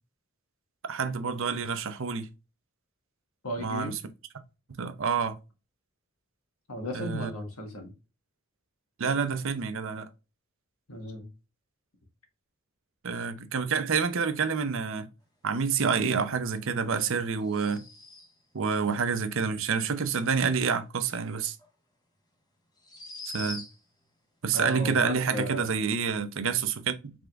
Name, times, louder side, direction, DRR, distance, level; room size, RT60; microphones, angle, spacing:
voice 1, 0.9-2.3 3.6-4.0 4.8-5.4 6.9-7.3 9.0-10.1 13.0-15.1 15.4-17.8 18.5-21.6 23.3-23.6 24.4-27.1, right 5 dB, 65° right, 0.6 m, -28 dB
voice 2, 3.4-4.0 6.7-7.9 10.9-11.3 24.5-25.8, equal, 85° left, 1.4 m, -35 dB
sound 1, 17.4-18.5 21.6-21.7 22.8-24.0, left 2 dB, 20° left, 1.0 m, -43 dB
5.1 x 3.5 x 2.4 m
head